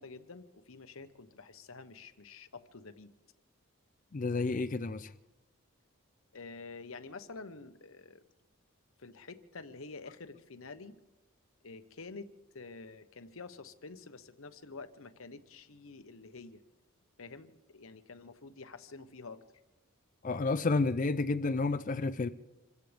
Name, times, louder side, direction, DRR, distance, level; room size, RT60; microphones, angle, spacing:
voice 1, 0.0-3.1 6.3-8.2 9.0-10.9 11.6-12.3 12.5-16.6 17.2-19.4, left 4 dB, 75° left, 1.1 m, -48 dB
voice 2, 4.1-5.1 20.2-22.3, left 3 dB, 40° left, 0.5 m, -30 dB
27.0 x 15.0 x 3.5 m
head